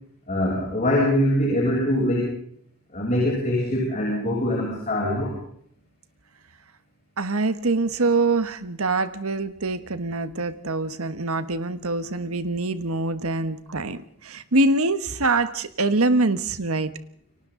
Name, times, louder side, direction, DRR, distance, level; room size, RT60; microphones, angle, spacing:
voice 1, 0.3-2.3 2.9-5.3, left 1 dB, 35° left, -3 dB, 7.6 m, -23 dB
voice 2, 7.2-16.9, right 2 dB, 75° right, 11 dB, 1.4 m, -24 dB
30.0 x 24.0 x 3.9 m, 0.63 s
head